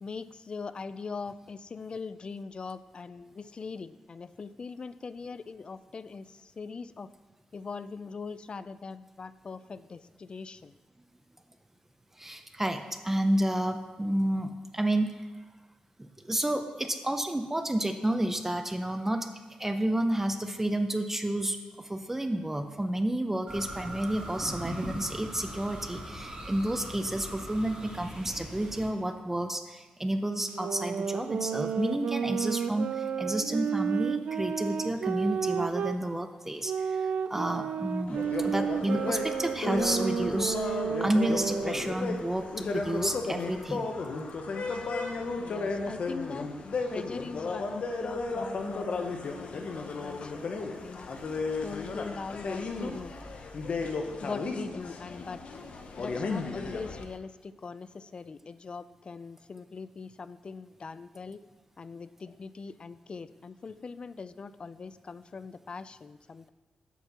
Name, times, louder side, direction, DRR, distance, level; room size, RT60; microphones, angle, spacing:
voice 1, 0.0-7.1 7.5-10.7 45.4-46.5 46.9-51.1 51.6-53.1 54.2-55.4 56.0-61.4 61.8-66.5, left 4 dB, 45° left, 15 dB, 0.4 m, -41 dB
voice 2, 12.2-15.2 16.0-19.3 19.6-43.9, right 1 dB, 15° right, 7 dB, 0.6 m, -30 dB
sound 1, 23.5-28.9, right 1 dB, 40° right, 3.3 m, -40 dB
sound 2, 30.5-36.0 36.6-41.8, right 7 dB, 70° right, 0.4 m, -32 dB
sound 3, 38.1-57.0, left 3 dB, 60° left, 0.9 m, -34 dB
8.2 x 4.5 x 7.1 m, 1.2 s
cardioid pair, 80°, 2 cm